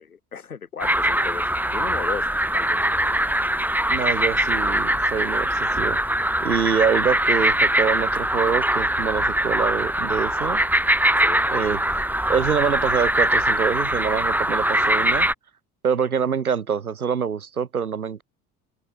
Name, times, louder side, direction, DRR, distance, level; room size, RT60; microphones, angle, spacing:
voice 1, 0.0-2.3 2.5-2.8 11.2-11.5, left 6 dB, 80° left, 4.8 m, -35 dB
sound 1, 0.8-15.3, right 1 dB, 5° right, 7.3 m, -22 dB
voice 2, 3.9-6.0 6.4-10.6 11.5-11.8 12.3-15.3 15.8-18.2, right 7 dB, 80° right, 5.1 m, -25 dB
open air
figure-of-eight pair, 55°, 43 cm